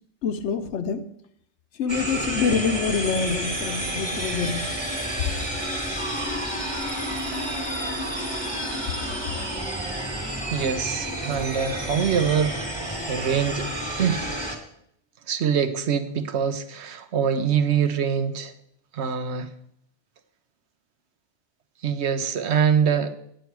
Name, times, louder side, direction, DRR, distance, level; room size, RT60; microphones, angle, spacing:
voice 1, 0.2-1.0 1.8-4.7, left 6 dB, 75° left, 10 dB, 1.1 m, -26 dB
sound 1, 1.9-14.6, right 1 dB, 20° right, 1.7 m, -30 dB
voice 2, 10.5-13.7 14.0-14.3 15.3-18.5 18.9-19.5 21.8-23.1, right 7 dB, 70° right, 10 dB, 1.0 m, -24 dB
9.0 x 8.8 x 4.6 m, 0.71 s
omnidirectional pair, 1.2 m